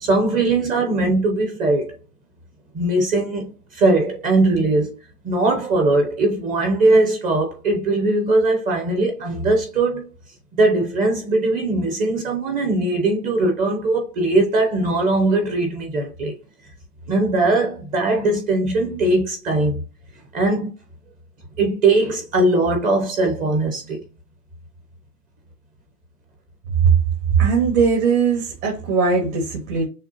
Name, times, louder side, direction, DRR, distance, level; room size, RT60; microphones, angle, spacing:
voice 1, 0.0-2.0 2.7-4.9 5.2-10.1 10.6-16.3 17.1-19.8 20.3-20.7 21.6-24.0, right 2 dB, 20° right, 0.7 m, -20 dB
voice 2, 27.4-29.8, right 5 dB, 65° right, 2.1 m, -19 dB
6.4 x 2.2 x 2.8 m
hypercardioid pair, 140°, 47 cm